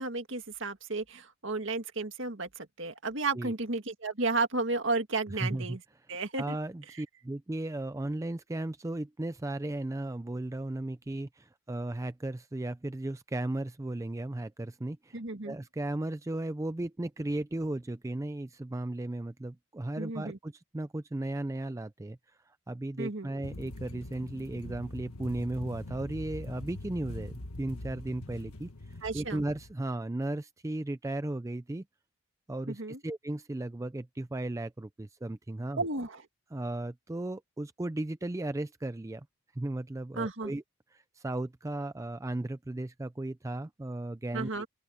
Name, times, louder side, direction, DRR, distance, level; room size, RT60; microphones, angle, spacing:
voice 1, 0.0-5.8 6.1-6.6 15.1-15.6 20.0-20.4 23.0-23.3 29.0-29.4 32.7-33.0 35.8-36.2 40.2-40.5 44.3-44.7, right 3 dB, 55° right, 2.0 m, -33 dB
voice 2, 5.3-5.8 6.4-31.8 32.5-35.8 36.5-39.3 39.5-40.6 40.9-44.5, right 1 dB, 15° right, 0.3 m, -36 dB
sound 1, 23.4-29.7, left 1 dB, 80° left, 1.7 m, -43 dB
open air
head